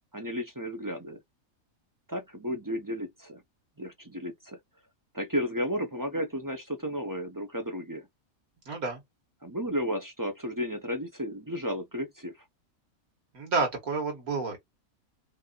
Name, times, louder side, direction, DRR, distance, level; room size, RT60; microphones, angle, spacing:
voice 1, 0.1-1.2 2.1-3.4 3.8-4.6 5.1-8.1 9.4-12.3, equal, 20° right, 0.6 m, -33 dB
voice 2, 8.7-9.0 13.3-14.6, right 4 dB, 85° right, 2.3 m, -29 dB
5.3 x 2.7 x 2.4 m
omnidirectional pair, 1.5 m